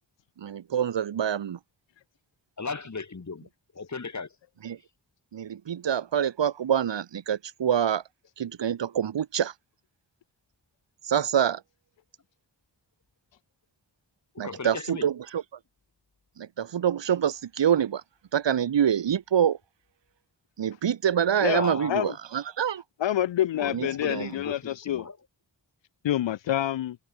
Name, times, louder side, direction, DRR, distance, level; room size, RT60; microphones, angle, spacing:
voice 1, 0.4-1.6 4.6-4.8 5.3-8.0 8.4-9.5 11.0-11.6 14.4-15.4 16.4-18.0 18.3-19.6 20.6-22.8 23.7-24.3, right 9 dB, 75° right, 1.1 m, -26 dB
voice 2, 2.6-3.5 3.7-4.3 14.4-15.1 21.4-22.1 23.6-25.2, left 4 dB, 40° left, 4.3 m, -36 dB
voice 3, 23.0-25.1 26.0-27.0, left 12 dB, 80° left, 0.6 m, -27 dB
wide cardioid pair, 150°, 44 cm